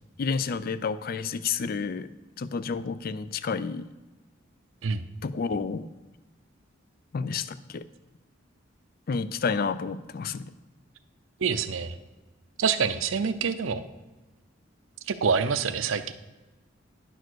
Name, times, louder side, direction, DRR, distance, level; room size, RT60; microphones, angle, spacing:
voice 1, 0.2-2.1 2.4-3.9 5.2-5.9 7.1-7.8 9.1-10.5, left 5 dB, 50° left, 14 dB, 0.4 m, -30 dB
voice 2, 11.4-11.9 12.6-13.8 15.1-16.1, right 6 dB, 85° right, 11 dB, 0.6 m, -26 dB
10.5 x 4.6 x 6.2 m, 1.1 s
head